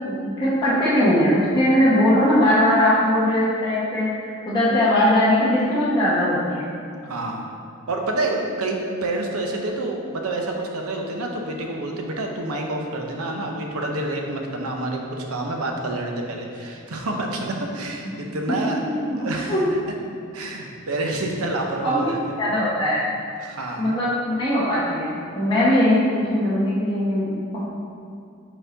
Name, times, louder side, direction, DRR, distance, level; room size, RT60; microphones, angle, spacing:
voice 1, 0.0-6.7 18.6-19.6 21.8-22.1 22.4-23.1 23.8-27.7, left 1 dB, 20° left, -12 dB, 1.0 m, -20 dB
voice 2, 7.0-7.4 7.9-18.8 19.2-19.5 20.3-22.2 23.4-24.0, right 2 dB, 85° right, 2 dB, 0.7 m, -28 dB
4.5 x 4.2 x 5.0 m, 2.5 s
head